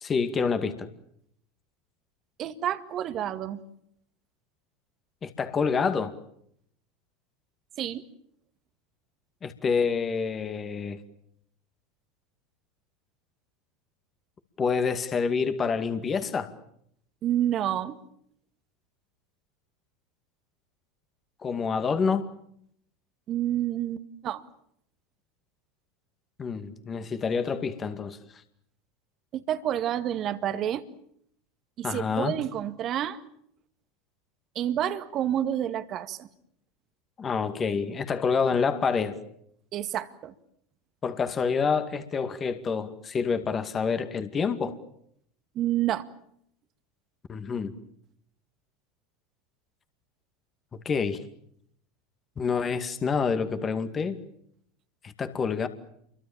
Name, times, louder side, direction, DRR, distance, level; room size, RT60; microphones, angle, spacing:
voice 1, 0.0-0.9 5.2-6.1 9.4-11.0 14.6-16.5 21.4-22.3 26.4-28.2 31.8-32.3 37.2-39.2 41.0-44.8 47.3-47.7 50.8-51.2 52.4-54.2 55.0-55.7, left 5 dB, 25° left, 9 dB, 2.3 m, -27 dB
voice 2, 2.4-3.6 7.8-8.0 17.2-18.0 23.3-24.4 29.3-30.8 31.8-33.2 34.6-36.3 39.7-40.3 45.6-46.1, right 11 dB, 40° right, 10 dB, 1.9 m, -29 dB
29.0 x 24.0 x 7.4 m, 0.72 s
figure-of-eight pair, 80°, 0 cm